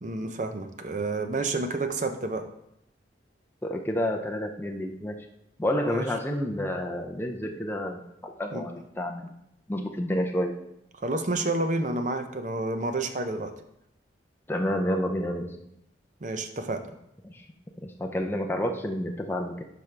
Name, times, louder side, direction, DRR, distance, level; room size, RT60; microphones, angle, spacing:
voice 1, 0.0-2.4 5.9-6.1 8.5-8.6 11.0-13.5 16.2-16.8, right 2 dB, 40° right, 7 dB, 0.6 m, -29 dB
voice 2, 3.6-5.3 5.6-9.3 9.7-10.5 14.5-15.6 17.2-17.5 17.8-19.6, equal, 10° left, 2 dB, 0.5 m, -29 dB
10.5 x 5.2 x 3.3 m, 0.81 s
head